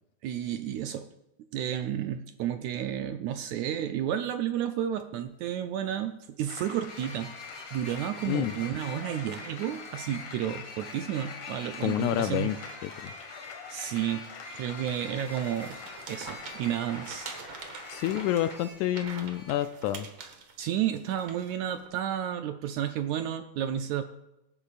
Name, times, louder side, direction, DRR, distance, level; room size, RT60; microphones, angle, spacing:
voice 1, 0.2-1.1 1.5-7.3 7.7-12.5 13.7-14.3 14.5-15.8 16.1-17.3 20.6-24.0, right 10 dB, 80° right, 7 dB, 1.7 m, -31 dB
sound 1, 5.2-5.3 6.9-19.7, left 2 dB, 35° left, 4.3 m, -47 dB
sound 2, 6.5-18.6, left 6 dB, 60° left, 2.0 m, -45 dB
voice 2, 11.8-12.6 12.8-13.1 17.9-20.1, left 12 dB, 80° left, 10 dB, 1.8 m, -28 dB
sound 3, 15.2-21.9, right 5 dB, 55° right, 1.5 m, -45 dB
24.5 x 10.0 x 2.4 m, 0.94 s
omnidirectional pair, 3.7 m